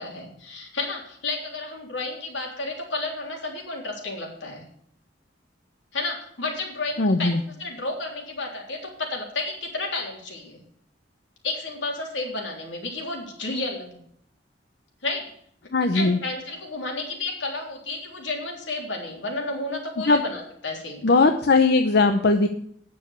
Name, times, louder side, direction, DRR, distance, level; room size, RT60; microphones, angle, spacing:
voice 1, 0.0-4.6 5.9-10.6 11.4-14.0 15.0-15.3 15.6-21.2, left 2 dB, 90° left, 0 dB, 3.6 m, -32 dB
voice 2, 7.0-7.4 15.7-16.2 20.1-20.2 21.0-22.5, left 3 dB, 60° left, 6 dB, 0.7 m, -19 dB
9.5 x 7.2 x 8.1 m, 0.66 s
head